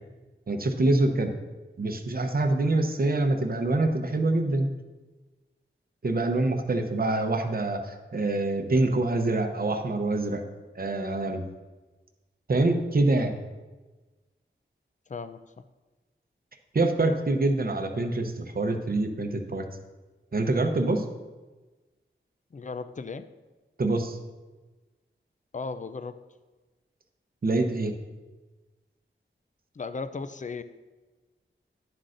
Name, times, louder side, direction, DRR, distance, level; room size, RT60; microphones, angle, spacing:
voice 1, 0.5-1.3 1.8-4.7 6.0-10.4 10.8-11.4 12.5-13.4 16.7-19.7 20.3-21.0 23.8-24.2 27.4-27.9, right 2 dB, 45° right, 5 dB, 0.8 m, -25 dB
voice 2, 15.1-15.4 22.5-23.3 25.5-26.2 29.8-30.6, left 4 dB, 40° left, 12 dB, 0.4 m, -36 dB
10.5 x 7.6 x 2.6 m, 1.2 s
wide cardioid pair, 75°, 21 cm